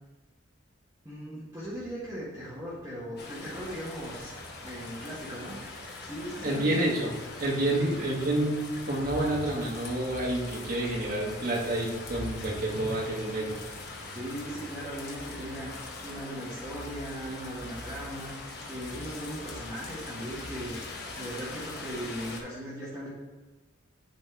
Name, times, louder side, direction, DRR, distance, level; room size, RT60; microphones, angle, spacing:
voice 1, 1.0-4.3 4.6-5.8 6.0-6.9 7.8-8.0 14.1-18.3 18.7-20.8 21.2-23.1, equal, 15° right, -9 dB, 1.7 m, -38 dB
sound 1, 1.6-21.1, equal, 70° right, 1.6 m, -48 dB
sound 2, 3.2-22.4, left 3 dB, 55° left, 1.1 m, -42 dB
voice 2, 6.4-7.1 7.4-13.5, right 1 dB, 45° right, -3 dB, 1.8 m, -29 dB
10.5 x 4.3 x 3.5 m, 1.3 s
head